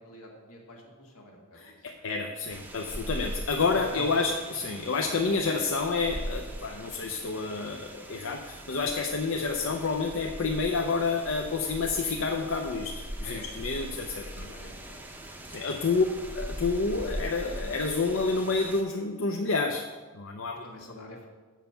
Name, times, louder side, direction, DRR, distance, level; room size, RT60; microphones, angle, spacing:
voice 1, 0.0-2.1 3.7-4.3 13.2-13.5 13.7-13.9 14.2-15.1 15.4-15.5 16.1-16.3 20.6-21.3, left 1 dB, 80° left, 0 dB, 1.9 m, -47 dB
voice 2, 1.6-14.5 15.5-16.1 16.3-19.8 20.1-20.6, left 4 dB, 60° left, 3 dB, 0.6 m, -29 dB
sound 1, 2.5-18.8, equal, 10° right, 0.6 m, -41 dB
7.4 x 7.1 x 5.6 m, 1.4 s
head